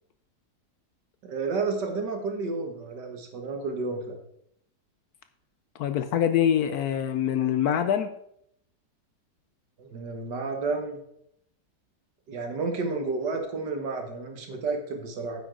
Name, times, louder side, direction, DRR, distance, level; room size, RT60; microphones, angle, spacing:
voice 1, 1.2-4.2 9.8-11.0 12.3-15.4, right 4 dB, 70° right, 4 dB, 2.1 m, -31 dB
voice 2, 5.8-8.1, left 9 dB, 70° left, 10 dB, 1.0 m, -24 dB
9.8 x 7.9 x 3.8 m, 0.73 s
omnidirectional pair, 1.9 m